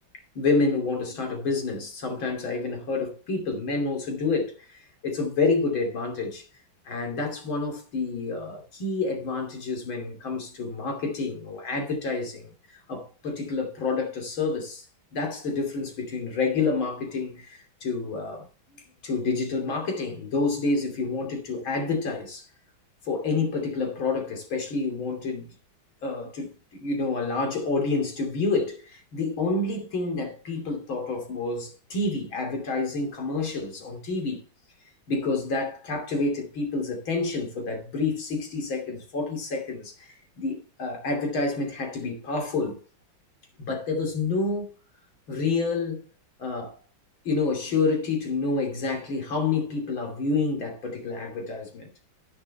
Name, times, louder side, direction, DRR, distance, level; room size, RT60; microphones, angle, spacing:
voice 1, 0.4-4.5 5.0-6.4 6.9-12.5 12.9-14.9 15.1-18.5 19.0-22.5 23.1-25.5 26.0-34.4 35.1-42.8 43.6-44.7 45.3-46.0 46.4-46.8 47.3-51.9, left 3 dB, 80° left, 3.6 m, -28 dB
15.0 x 7.1 x 3.3 m
omnidirectional pair, 2.2 m